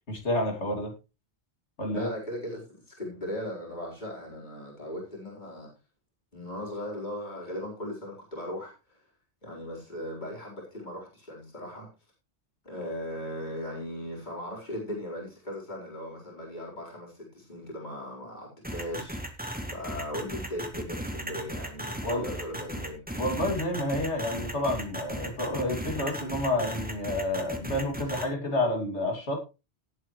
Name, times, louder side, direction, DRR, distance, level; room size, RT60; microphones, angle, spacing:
voice 1, 0.1-0.9 1.8-2.1 22.0-22.2 23.2-29.4, left 1 dB, 85° left, 2 dB, 3.0 m, -29 dB
voice 2, 1.9-5.7 6.3-9.0 9.4-11.9 12.6-19.2 19.7-23.0, left 1 dB, 45° left, -3 dB, 4.6 m, -38 dB
sound 1, 18.6-28.2, equal, 10° right, 2.0 m, -36 dB
18.0 x 8.7 x 3.2 m, 0.29 s
omnidirectional pair, 1.1 m